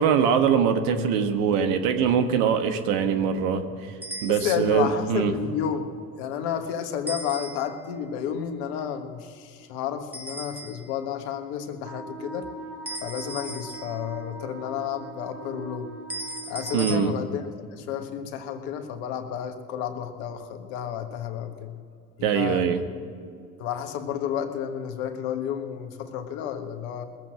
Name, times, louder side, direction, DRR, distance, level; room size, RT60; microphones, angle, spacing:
voice 1, 0.0-3.9 4.2-5.3 16.7-17.1 22.2-22.8, right 7 dB, 65° right, 7 dB, 1.4 m, -23 dB
sound 1, 4.0-4.8 7.1-7.9 10.1-11.0 12.9-14.3 16.1-17.0, right 1 dB, 5° right, 1.1 m, -37 dB
voice 2, 4.3-5.9 6.2-12.5 13.0-15.9 16.5-21.7 22.3-22.7 23.6-27.1, left 8 dB, 70° left, 7 dB, 1.4 m, -31 dB
Wind instrument woodwind instrument, 11.8-17.0, right 4 dB, 35° right, 3.7 m, -41 dB
20.0 x 7.7 x 7.3 m, 2.3 s
hypercardioid pair, 70°, 42 cm